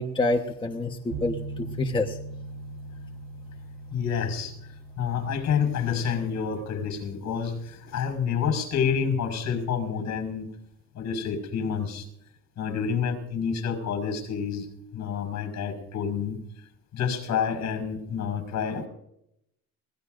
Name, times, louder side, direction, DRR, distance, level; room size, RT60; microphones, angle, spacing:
voice 1, 0.0-2.2, left 2 dB, 15° left, 2 dB, 1.2 m, -27 dB
sound 1, 1.1-9.3, right 3 dB, 75° right, 3.4 m, -42 dB
voice 2, 3.9-4.5 5.0-10.5 10.9-12.0 12.6-14.7 14.9-16.4 16.9-18.9, left 7 dB, 55° left, 7 dB, 5.4 m, -28 dB
23.0 x 18.0 x 2.6 m, 0.77 s
cardioid pair, 120°, 34 cm